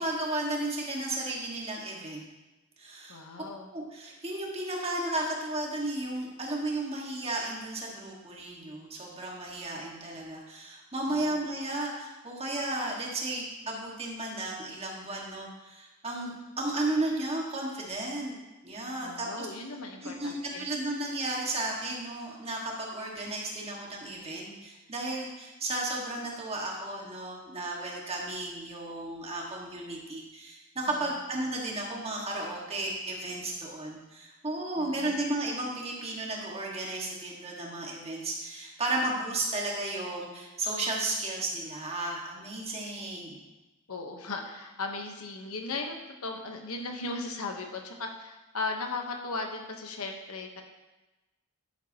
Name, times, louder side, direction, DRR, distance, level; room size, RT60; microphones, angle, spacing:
voice 1, 0.0-2.2 2.8-3.2 3.7-18.3 18.6-19.5 20.0-43.4, right 2 dB, 30° right, -2 dB, 1.7 m, -34 dB
voice 2, 3.1-3.7 11.1-11.4 19.0-20.6 30.9-31.0 34.8-35.2 43.9-46.0 46.2-50.6, left 3 dB, 75° left, 3 dB, 1.1 m, -37 dB
10.5 x 9.0 x 2.9 m, 1.1 s
head